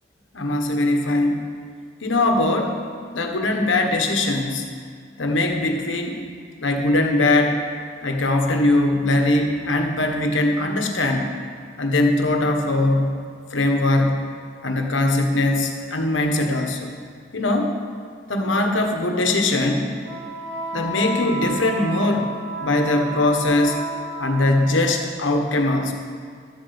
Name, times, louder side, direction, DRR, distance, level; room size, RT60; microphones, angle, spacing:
voice 1, 0.3-1.5 2.0-2.8 3.1-4.6 5.2-6.2 6.6-7.6 8.0-11.3 11.8-13.2 13.5-14.2 14.6-16.9 17.3-17.8 18.3-19.9 20.7-22.3 22.6-23.8 24.2-25.9, left 2 dB, 90° left, 3 dB, 1.4 m, -21 dB
Wind instrument woodwind instrument, 18.6-24.9, right 2 dB, 85° right, 3.1 m, -32 dB
11.5 x 7.7 x 7.0 m, 2.1 s
head